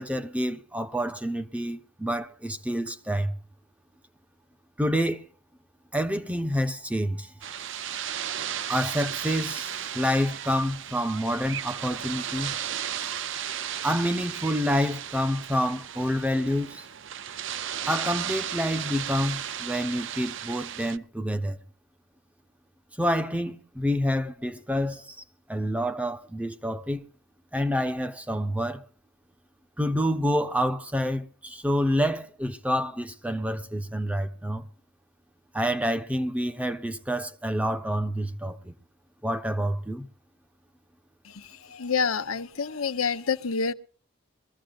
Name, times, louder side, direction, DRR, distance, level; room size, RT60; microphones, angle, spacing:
voice 1, 0.0-3.4 4.8-5.3 5.9-7.3 8.7-12.5 13.8-16.9 17.9-21.6 23.0-25.2 25.5-27.0 27.5-28.8 29.8-34.7 35.5-38.7 39.2-40.1, equal, 5° right, 0.9 m, -28 dB
sound 1, 7.4-21.0, right 9 dB, 60° right, 0.6 m, -35 dB
voice 2, 41.2-43.7, left 5 dB, 90° left, 1.0 m, -28 dB
22.5 x 15.0 x 2.5 m
head